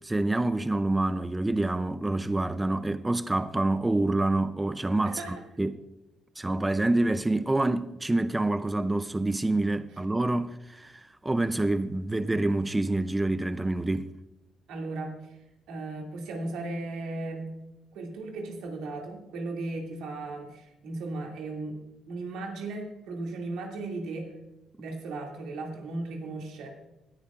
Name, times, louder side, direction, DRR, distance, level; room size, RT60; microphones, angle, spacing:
voice 1, 0.0-5.7 6.4-14.1, right 2 dB, 15° right, 0.5 m, -27 dB
voice 2, 5.0-5.4 14.7-15.4 15.7-17.5 17.9-21.8 22.1-24.3 24.8-26.7, right 2 dB, 90° right, 2.4 m, -36 dB
18.5 x 10.5 x 2.5 m
cardioid pair, 90°, 0 cm